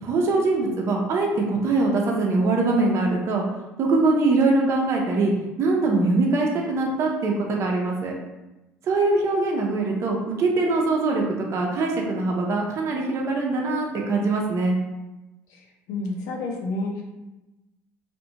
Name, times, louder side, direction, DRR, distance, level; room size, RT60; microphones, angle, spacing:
voice 1, 0.0-3.4 3.8-5.3 5.6-8.1 8.8-14.8, right 3 dB, 50° right, 0 dB, 0.5 m, -22 dB
voice 2, 15.5-17.0, left 2 dB, 75° left, 0 dB, 0.5 m, -30 dB
2.4 x 2.1 x 2.8 m, 1.0 s
supercardioid pair, 80°, 6 cm